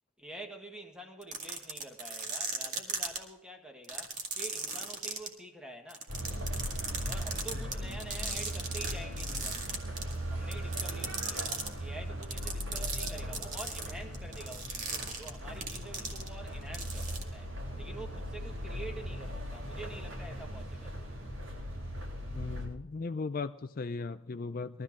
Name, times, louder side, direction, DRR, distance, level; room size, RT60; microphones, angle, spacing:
voice 1, 0.2-6.1 7.1-9.8 10.3-21.1, right 1 dB, 5° right, 1.6 m, -47 dB
sound 1, 1.2-3.2 3.8-5.3 5.9-8.9 9.2-10.2 10.5-11.7 12.2-16.5 16.7-17.2, right 5 dB, 35° right, 2.0 m, -36 dB
sound 2, 6.1-22.7, equal, 85° right, 7.6 m, -39 dB
voice 2, 22.3-24.8, left 4 dB, 45° left, 0.4 m, -37 dB
21.5 x 13.5 x 3.7 m
head